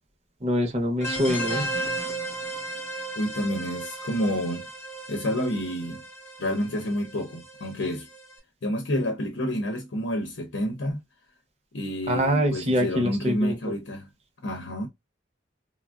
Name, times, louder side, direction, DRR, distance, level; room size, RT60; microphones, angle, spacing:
voice 1, 0.4-1.7 12.1-13.6, equal, 35° right, 0.6 m, -24 dB
sound 1, 1.0-8.3, right 1 dB, 15° left, 0.6 m, -35 dB
voice 2, 3.2-4.7 5.1-6.0 6.4-8.1 8.6-11.0 11.7-14.1 14.4-14.9, equal, 75° left, 0.7 m, -29 dB
3.4 x 2.1 x 2.3 m
head